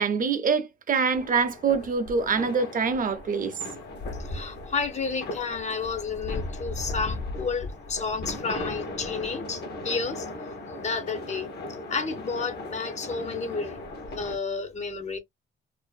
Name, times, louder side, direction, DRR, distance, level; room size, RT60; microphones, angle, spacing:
voice 1, 0.0-3.5, right 5 dB, 45° right, 0.5 m, -25 dB
sound 1, 1.1-14.4, left 2 dB, 55° left, 0.9 m, -37 dB
voice 2, 4.2-10.3 10.8-11.5 11.9-13.8 14.1-15.2, left 4 dB, 35° left, 0.6 m, -31 dB
2.5 x 2.4 x 2.2 m
cardioid pair, 90°, 20 cm